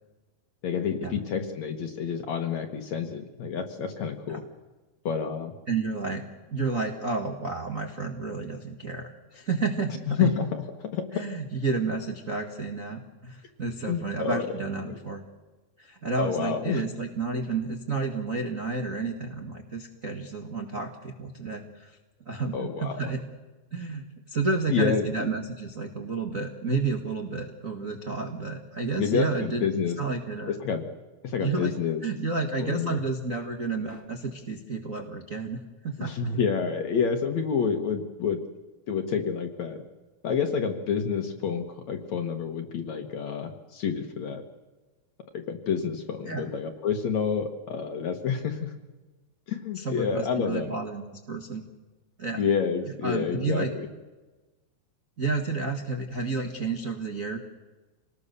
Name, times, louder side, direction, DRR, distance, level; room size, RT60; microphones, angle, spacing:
voice 1, 0.6-4.4 5.1-5.5 10.1-10.5 10.9-11.2 13.9-14.5 14.9-15.0 16.2-16.8 22.5-23.1 24.7-25.3 29.0-30.0 30.5-30.9 31.2-32.0 32.6-33.0 36.0-38.4 38.9-39.8 40.2-44.4 45.3-48.7 49.5-50.8 52.4-53.9, left 6 dB, 60° left, 6 dB, 2.1 m, -28 dB
voice 2, 5.7-10.3 11.1-15.2 15.8-22.0 22.2-23.2 23.7-29.7 30.0-30.6 31.4-31.7 32.0-36.2 46.2-46.5 49.7-51.7 52.2-52.4 53.0-53.7 55.2-57.4, right 4 dB, 65° right, 3 dB, 0.8 m, -31 dB
26.5 x 19.5 x 6.8 m, 1.2 s
omnidirectional pair, 4.6 m